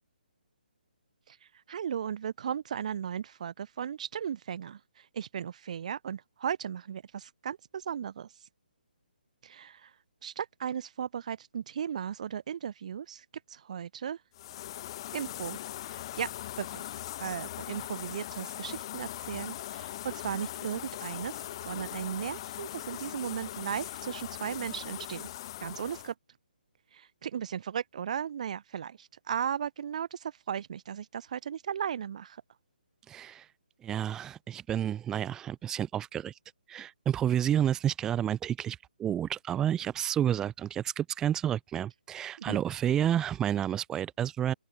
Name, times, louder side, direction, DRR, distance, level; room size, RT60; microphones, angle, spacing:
voice 1, 1.7-8.3 9.4-9.9 10.2-14.2 15.1-15.6 15.9-16.3 16.6-16.9 17.2-21.3 21.7-25.3 25.6-26.1 26.9-32.4 42.4-42.6, right 8 dB, 45° right, 1.0 m, -36 dB
sound 1, 14.3-26.1, left 13 dB, 30° left, 0.8 m, -40 dB
voice 2, 33.1-33.5 33.8-36.3 36.7-44.5, right 10 dB, 10° right, 0.8 m, -30 dB
open air
figure-of-eight pair, 150°, 5 cm